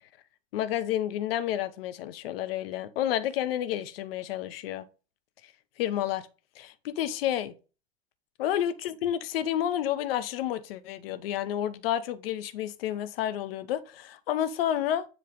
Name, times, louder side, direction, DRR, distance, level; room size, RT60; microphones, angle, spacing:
voice 1, 0.5-4.8 5.8-6.3 6.6-7.5 8.4-15.1, left 11 dB, 65° left, 0.8 m, -30 dB
7.8 x 3.2 x 5.0 m
figure-of-eight pair, 80°, 32 cm